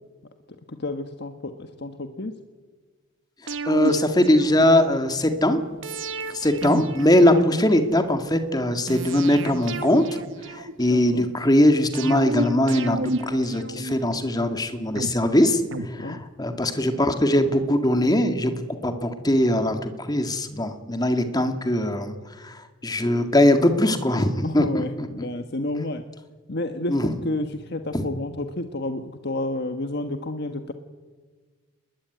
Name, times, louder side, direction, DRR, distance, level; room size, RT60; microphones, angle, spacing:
voice 1, 0.7-2.3 10.9-11.3 16.0-16.2 24.4-26.0 26.5-30.7, left 2 dB, 55° left, 7 dB, 1.4 m, -30 dB
sound 1, 3.5-5.0 5.8-8.0 8.9-11.1 11.9-14.3 15.0-16.6 16.9-17.0, right 2 dB, 65° right, 1.5 m, -32 dB
voice 2, 3.7-5.6 6.3-10.0 10.5-15.6 15.9-22.2 22.4-22.6 22.8-24.8 26.9-27.1 27.9-28.0, left 1 dB, 20° left, 7 dB, 2.0 m, -21 dB
28.5 x 21.0 x 9.4 m, 1.4 s
head